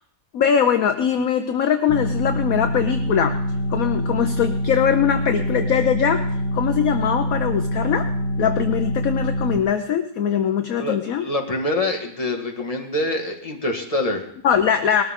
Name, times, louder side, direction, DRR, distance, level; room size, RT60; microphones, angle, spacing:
voice 1, 0.3-3.4 3.7-6.2 6.5-8.1 8.4-11.2 14.4-15.0, left 8 dB, 60° left, 7 dB, 1.1 m, -21 dB
sound 1, 1.9-9.6, equal, 85° left, 1.7 m, -25 dB
voice 2, 11.2-14.3, left 1 dB, 20° left, 1 dB, 1.9 m, -25 dB
20.5 x 13.5 x 3.7 m, 0.68 s
omnidirectional pair, 1.9 m